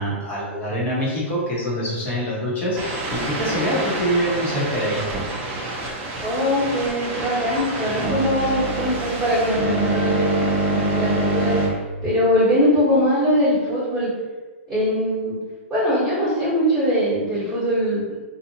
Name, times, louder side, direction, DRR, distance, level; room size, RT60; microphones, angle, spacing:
voice 1, 0.0-5.0, equal, 25° left, -6 dB, 1.1 m, -24 dB
sound 1, 2.7-11.7, right 2 dB, 30° right, 0.6 m, -26 dB
voice 2, 6.2-11.6 12.0-14.1 14.7-15.4 15.7-18.1, equal, 10° right, -12 dB, 1.3 m, -21 dB
2.7 x 2.4 x 2.8 m, 1.3 s
hypercardioid pair, 135°, 7 cm